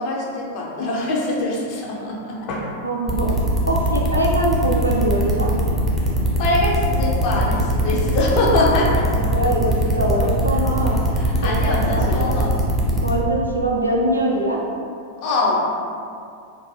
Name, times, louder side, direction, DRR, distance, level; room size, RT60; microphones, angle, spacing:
voice 1, 0.0-2.8 6.4-9.1 11.2-12.6 15.2-15.7, left 2 dB, 45° left, -3 dB, 0.5 m, -23 dB
voice 2, 2.8-3.3 3.6-5.5 9.1-11.0 11.4-12.1 13.0-14.6, right 1 dB, 85° right, -3 dB, 0.4 m, -22 dB
sound 1, 3.1-13.1, right 1 dB, 10° right, 0.5 m, -20 dB
2.5 x 2.2 x 3.1 m, 2.4 s
figure-of-eight pair, 90°, 0 cm